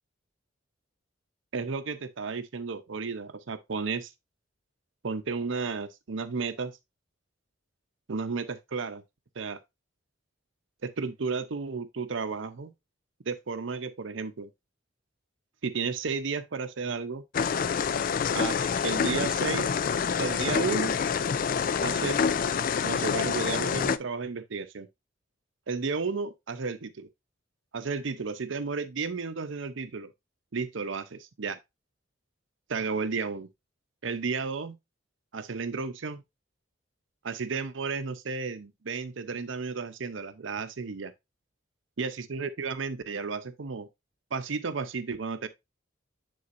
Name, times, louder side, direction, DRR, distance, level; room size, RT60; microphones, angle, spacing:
voice 1, 1.5-4.1 5.0-6.7 8.1-9.0 9.4-9.6 10.8-12.7 13.3-14.5 15.6-17.2 18.3-19.7 20.2-21.0 21.8-22.3 22.8-24.9 25.7-27.1 27.7-30.1 30.5-31.6 32.7-33.5 34.0-34.8 35.3-36.2 37.2-41.1 42.0-43.9 44.3-45.5, right 4 dB, 80° right, 0.7 m, -33 dB
sound 1, 17.3-24.0, left 6 dB, 45° left, 0.3 m, -27 dB
9.6 x 3.9 x 2.6 m
head